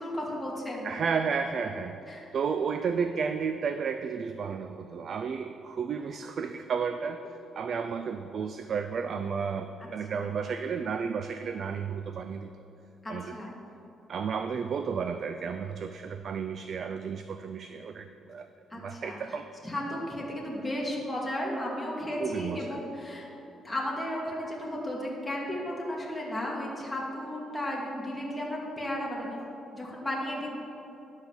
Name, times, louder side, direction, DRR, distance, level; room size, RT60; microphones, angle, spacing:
voice 1, 0.0-0.9 2.1-2.3 9.8-10.3 13.0-13.5 18.7-19.2 19.6-23.3 23.6-29.3 29.7-30.5, left 1 dB, 10° left, -5 dB, 1.7 m, -34 dB
voice 2, 0.8-2.0 2.3-7.2 7.5-12.5 13.1-13.3 14.1-18.5 18.7-19.5 22.2-22.8, right 6 dB, 55° right, 9 dB, 0.3 m, -32 dB
11.0 x 4.0 x 7.0 m, 2.9 s
cardioid pair, 90°, 0 cm